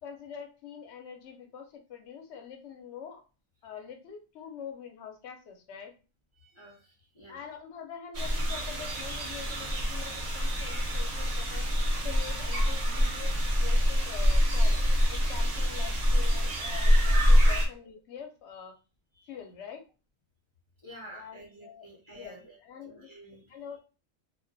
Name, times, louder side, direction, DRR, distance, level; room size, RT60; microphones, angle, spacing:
voice 1, 0.0-3.2 3.6-5.9 7.3-11.7 12.0-14.8 15.1-18.8 19.3-19.9 20.9-23.1 23.5-23.8, left 7 dB, 65° left, 4 dB, 0.7 m, -45 dB
voice 2, 6.4-7.4 19.1-19.3 20.8-22.6 22.8-23.6, right 1 dB, 50° left, -4 dB, 0.3 m, -50 dB
sound 1, 8.1-17.7, equal, 55° right, 0.4 m, -25 dB
2.2 x 2.2 x 2.5 m, 0.33 s
omnidirectional pair, 1.4 m